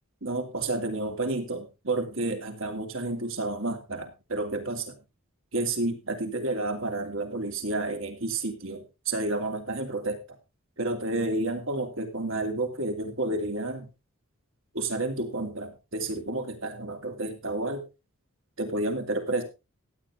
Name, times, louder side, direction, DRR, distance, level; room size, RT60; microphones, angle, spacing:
voice 1, 0.2-4.9 5.5-10.2 10.8-13.9 14.7-17.8 18.6-19.4, right 2 dB, 65° right, 5 dB, 2.7 m, -30 dB
15.5 x 9.5 x 3.6 m, 0.28 s
head